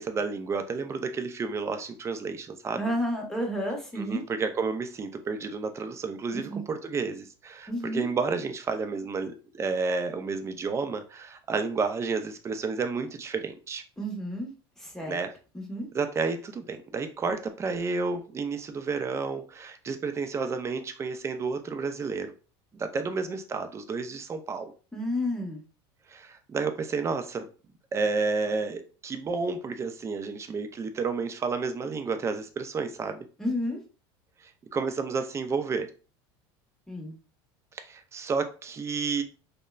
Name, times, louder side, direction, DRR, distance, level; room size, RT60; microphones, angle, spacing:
voice 1, 0.0-2.8 4.0-13.8 15.1-15.3 15.9-22.3 22.7-24.7 26.1-27.5 27.9-33.2 34.7-35.9 37.8-39.2, right 4 dB, 20° right, 0.4 m, -31 dB
voice 2, 2.8-4.2 6.3-6.6 7.7-8.1 14.0-14.5 14.8-15.2 15.5-15.9 24.9-25.6 33.4-33.8 36.9-37.1, equal, 5° left, 0.8 m, -31 dB
2.9 x 2.1 x 2.2 m
supercardioid pair, 105°, 13 cm